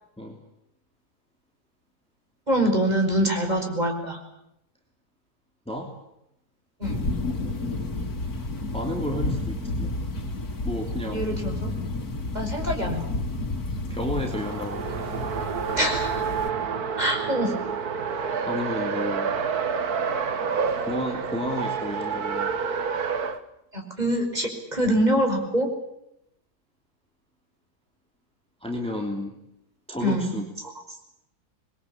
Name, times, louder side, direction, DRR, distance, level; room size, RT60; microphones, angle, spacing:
voice 1, 2.5-4.2 6.8-7.1 11.1-11.7 12.3-13.1 15.8-16.2 17.0-17.5 23.7-25.7 30.0-30.3, equal, 25° right, 3 dB, 5.6 m, -24 dB
sound 1, 6.8-16.5, left 2 dB, 70° left, 2.9 m, -31 dB
voice 2, 8.7-9.9 10.6-11.3 13.9-14.9 18.4-19.3 20.9-22.6 28.6-29.4 29.9-30.5, left 1 dB, 5° left, 1 dB, 3.1 m, -31 dB
Race car auto racing, 14.2-23.4, right 6 dB, 70° right, 2.0 m, -28 dB
26.5 x 22.0 x 8.8 m, 0.81 s
omnidirectional pair, 1.7 m